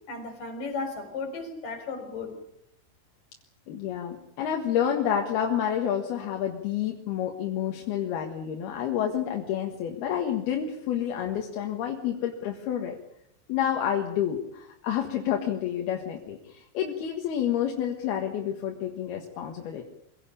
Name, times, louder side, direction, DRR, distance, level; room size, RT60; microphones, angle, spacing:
voice 1, 0.1-2.3, left 4 dB, 45° left, 6 dB, 5.7 m, -35 dB
voice 2, 3.7-13.0 13.5-19.9, left 9 dB, 60° left, 2 dB, 3.1 m, -29 dB
24.5 x 17.0 x 8.6 m, 0.78 s
omnidirectional pair, 5.8 m